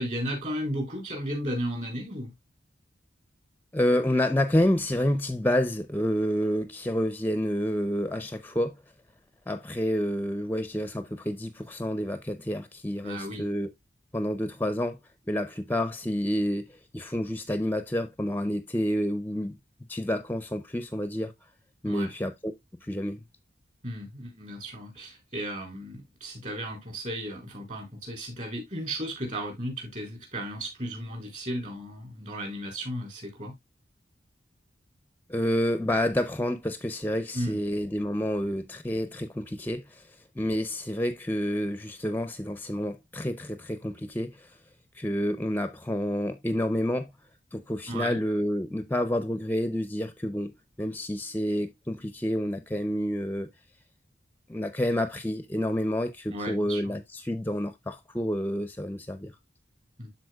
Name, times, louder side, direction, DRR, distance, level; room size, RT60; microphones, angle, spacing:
voice 1, 0.0-2.3 13.0-13.4 21.8-22.1 23.8-33.5 37.3-37.6 47.9-48.2 56.3-57.0 60.0-60.1, equal, 40° right, 3.8 m, -34 dB
voice 2, 3.7-8.8 9.5-13.7 14.1-15.0 15.3-19.5 19.9-21.3 21.8-22.5 22.8-23.2 35.3-44.6 44.9-47.1 47.5-50.5 50.8-53.5 54.5-59.3, equal, 10° left, 0.5 m, -29 dB
12.5 x 4.3 x 2.2 m
head